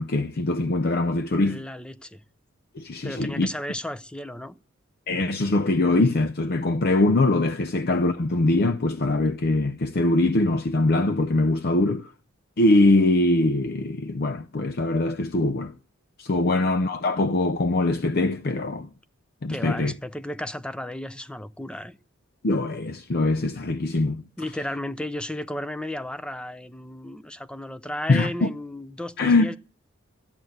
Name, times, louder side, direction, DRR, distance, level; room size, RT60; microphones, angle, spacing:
voice 1, 0.0-1.6 2.8-3.5 5.1-12.1 12.6-15.7 16.2-18.9 19.4-19.9 22.4-24.2 28.1-28.5 29.2-29.5, left 2 dB, 45° left, 0.6 m, -22 dB
voice 2, 1.4-2.2 3.0-4.6 19.5-22.0 24.4-29.6, left 1 dB, 5° left, 0.6 m, -34 dB
13.5 x 8.9 x 8.0 m
head